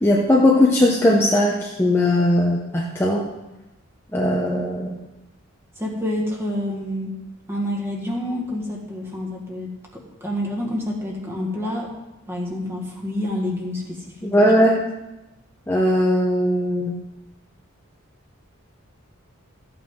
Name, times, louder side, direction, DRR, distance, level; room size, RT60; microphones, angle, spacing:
voice 1, 0.0-3.3 4.1-5.0 14.2-14.8 15.7-16.9, left 1 dB, 10° left, -3 dB, 1.0 m, -18 dB
voice 2, 5.8-7.1 7.5-11.9 12.3-14.5, left 1 dB, 10° right, -2 dB, 1.8 m, -28 dB
14.0 x 8.7 x 3.8 m, 0.99 s
head